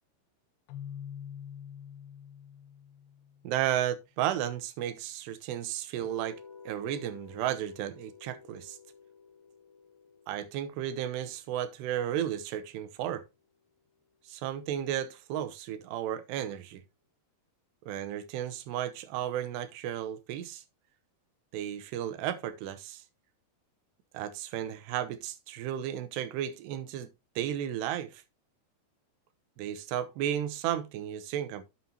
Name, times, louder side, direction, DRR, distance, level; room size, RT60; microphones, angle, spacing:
Keyboard (musical), 0.7-3.6, left 9 dB, 90° left, 2.1 m, -45 dB
voice 1, 3.4-8.8 10.3-13.2 14.3-16.8 17.9-20.6 21.5-23.0 24.1-27.1 27.4-28.2 29.6-31.6, right 11 dB, 80° right, 3.0 m, -34 dB
sound 1, 6.0-12.1, left 5 dB, 10° left, 4.3 m, -53 dB
11.0 x 7.6 x 2.8 m
omnidirectional pair, 4.9 m